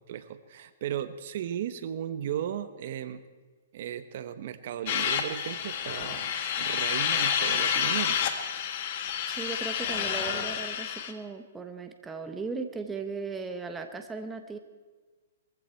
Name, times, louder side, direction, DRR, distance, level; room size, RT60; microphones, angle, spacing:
voice 1, 0.1-3.2 3.7-8.2, right 10 dB, 50° right, 12 dB, 1.0 m, -35 dB
sound 1, 4.9-11.1, left 8 dB, 45° left, 1.6 m, -29 dB
voice 2, 9.3-14.6, right 4 dB, 10° right, 6 dB, 1.1 m, -37 dB
21.5 x 15.0 x 4.5 m, 1.4 s
hypercardioid pair, 155°, 0 cm